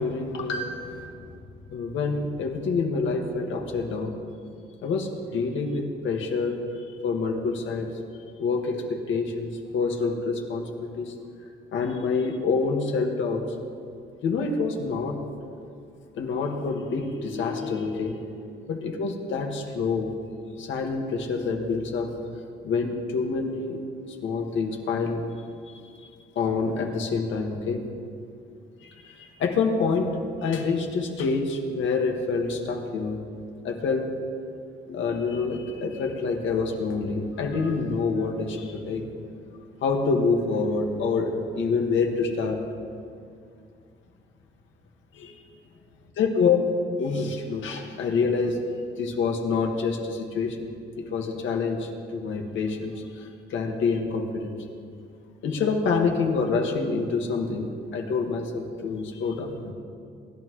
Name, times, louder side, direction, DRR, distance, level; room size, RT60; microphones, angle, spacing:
voice 1, 0.0-1.4 1.7-4.2 4.8-6.6 7.0-7.9 8.4-11.1 11.7-13.4 14.2-15.2 16.2-18.2 18.7-20.1 20.6-22.1 22.6-23.8 24.1-25.2 26.4-27.8 28.8-30.1 30.4-33.2 33.6-34.1 34.8-39.1 39.8-42.6 45.1-45.4 46.2-46.6 46.9-48.6 49.0-50.7 51.0-54.5 55.4-59.7, left 4 dB, 75° left, 2 dB, 1.9 m, -27 dB
23.0 x 11.5 x 3.2 m, 2.4 s
cardioid pair, 90°, 20 cm